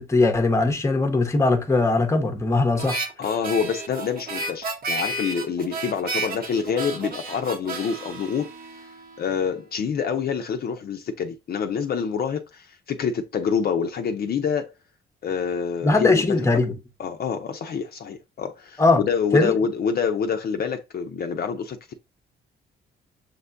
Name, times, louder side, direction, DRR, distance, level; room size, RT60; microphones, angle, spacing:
voice 1, 0.0-3.0 15.8-16.7 18.8-19.0 19.3-19.5, left 3 dB, 15° left, 0.7 m, -20 dB
Harmonica, 2.8-9.3, right 2 dB, 50° right, 0.8 m, -32 dB
voice 2, 3.2-8.5 9.2-14.7 15.2-16.6 17.0-21.9, left 6 dB, 50° left, 0.5 m, -27 dB
6.5 x 2.2 x 2.5 m
cardioid pair, 90°, 20 cm